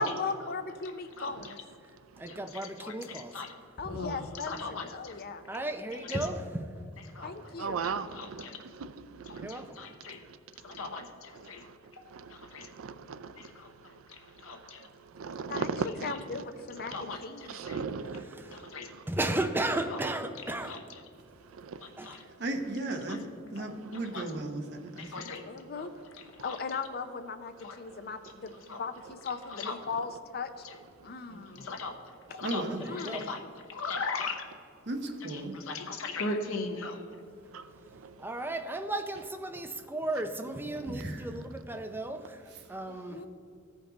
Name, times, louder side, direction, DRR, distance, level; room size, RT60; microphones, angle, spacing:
voice 1, 0.0-1.5 3.8-5.4 7.2-7.8 15.5-15.7 16.0-17.6 25.4-25.9 26.4-30.5 31.0-31.6 32.9-33.3 42.9-43.3, left 4 dB, 50° left, 0.6 m, -37 dB
voice 2, 1.2-1.6 2.3-2.4 2.8-3.5 3.8-5.2 5.6-5.7 6.0-6.3 7.1-7.3 8.1-8.6 9.3-10.2 10.6-11.6 12.0-12.7 13.5-13.7 14.1-14.9 16.8-17.8 18.5-18.9 19.9-20.0 20.6-20.8 22.0-22.2 23.1-23.2 24.1-24.3 25.0-25.4 25.7-25.9 26.4-26.8 27.6-27.8 28.6-28.8 29.5-29.8 30.6-30.8 31.3-31.9 32.3-32.6 32.9-33.4 33.7-34.5 35.3-37.0, left 3 dB, 90° left, 1.0 m, -39 dB
voice 3, 2.2-3.3 3.8-4.0 5.5-6.6 9.4-9.8 18.4-18.6 19.1-20.8 22.0-22.2 32.7-33.3 38.2-43.2, right 1 dB, 10° right, 0.5 m, -34 dB
voice 4, 7.6-8.5 8.8-8.9 9.2-9.5 10.8-11.0 12.1-12.3 12.6-13.3 15.2-16.4 16.9-17.2 17.5-18.7 20.6-20.7 21.6-21.8 25.7-25.8 29.0-29.1 29.9-30.0 37.5-37.6 38.0-38.1, right 5 dB, 80° right, 0.4 m, -37 dB
voice 5, 22.4-25.1 32.4-32.8 34.9-35.6 40.9-41.3, right 2 dB, 55° right, 0.9 m, -35 dB
14.5 x 5.2 x 3.9 m
head